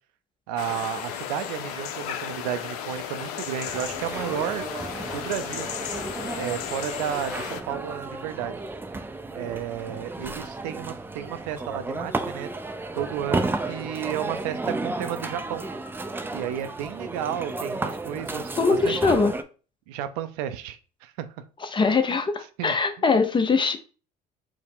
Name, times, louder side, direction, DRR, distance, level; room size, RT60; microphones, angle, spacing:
voice 1, 0.5-4.6 5.1-5.7 6.4-8.5 9.3-12.5 12.9-15.6 16.3-18.6 18.8-18.9 19.9-21.3 22.6-22.7, right 10 dB, 75° right, 0.5 m, -32 dB
sound 1, 0.6-7.6, left 9 dB, 80° left, 0.5 m, -34 dB
sound 2, 3.7-19.4, right 2 dB, 10° right, 0.4 m, -33 dB
voice 2, 18.6-19.3 21.6-23.8, left 4 dB, 25° left, 0.6 m, -22 dB
4.6 x 2.1 x 3.6 m
hypercardioid pair, 70°, 20 cm